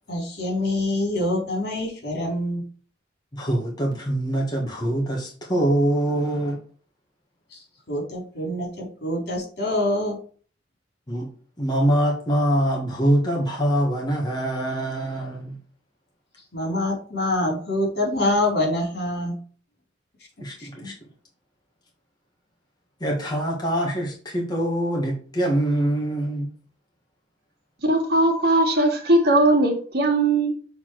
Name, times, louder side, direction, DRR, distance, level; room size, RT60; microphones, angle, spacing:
voice 1, 0.1-2.6 7.5-10.2 16.5-19.4 20.6-20.9, left 1 dB, 65° left, 3.9 m, -25 dB
voice 2, 3.3-6.6 11.1-11.3 11.6-15.6 20.4-20.9 23.0-26.5, right 1 dB, 25° left, 1.6 m, -24 dB
voice 3, 27.8-30.5, right 2 dB, 65° right, 1.9 m, -19 dB
7.0 x 4.5 x 4.6 m
head